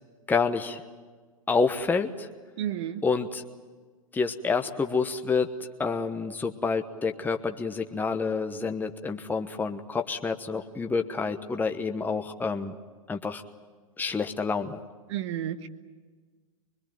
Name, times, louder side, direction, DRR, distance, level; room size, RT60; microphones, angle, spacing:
voice 1, 0.3-0.8 1.5-2.3 3.0-3.4 4.1-5.5 5.8-12.7 13.1-13.4 14.0-14.8, left 4 dB, 10° left, 5 dB, 1.1 m, -28 dB
voice 2, 2.6-3.0 15.1-15.7, right 11 dB, 55° right, 11 dB, 1.4 m, -31 dB
24.5 x 22.0 x 9.1 m, 1.4 s
figure-of-eight pair, 100°, 18 cm